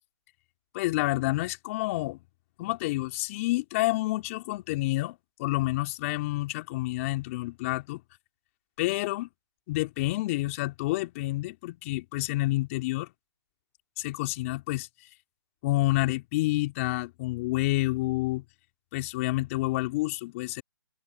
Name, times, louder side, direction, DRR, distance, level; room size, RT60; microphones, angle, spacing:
voice 1, 0.7-2.2 2.6-8.0 8.8-9.3 9.7-13.1 14.0-14.9 15.6-18.4 18.9-20.6, left 19 dB, 35° left, 3.3 m, -29 dB
hypercardioid pair, 140°, 13 cm